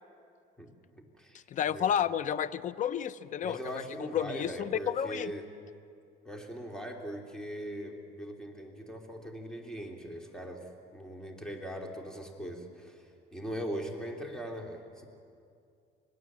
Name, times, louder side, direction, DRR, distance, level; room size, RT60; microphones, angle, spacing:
voice 1, 0.6-1.4 1.7-1.9 3.4-5.5 6.2-10.6 10.9-13.0 13.3-15.1, equal, 5° left, 2 dB, 3.0 m, -40 dB
voice 2, 1.5-5.3, left 9 dB, 50° left, 15 dB, 0.7 m, -31 dB
26.0 x 20.5 x 7.5 m, 2.4 s
cardioid pair, 110°, 17 cm